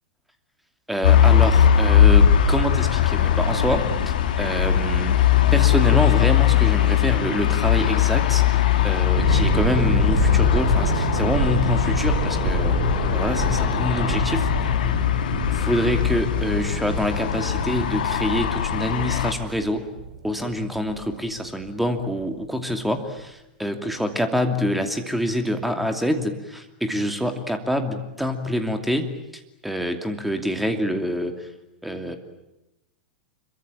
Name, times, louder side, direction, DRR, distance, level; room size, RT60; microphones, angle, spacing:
voice 1, 0.9-5.2 5.5-12.8 13.1-14.5 15.5-19.8 20.2-29.1 29.6-31.5 31.8-32.2, equal, ahead, 6 dB, 2.7 m, -26 dB
sound 1, 1.0-19.3, left 10 dB, 60° left, 2.5 m, -20 dB
sound 2, 9.1-21.7 22.0-22.3, right 4 dB, 45° right, 5.1 m, -28 dB
26.0 x 23.5 x 9.0 m, 0.92 s
figure-of-eight pair, 95°, 5 cm